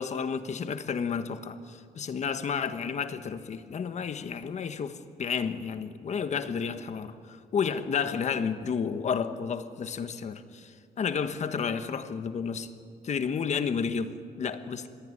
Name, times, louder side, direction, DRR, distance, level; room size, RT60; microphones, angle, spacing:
voice 1, 0.0-12.7 13.0-14.9, left 6 dB, 45° left, 10 dB, 1.3 m, -31 dB
27.0 x 21.5 x 9.8 m, 2.3 s
wide cardioid pair, 160°, 16 cm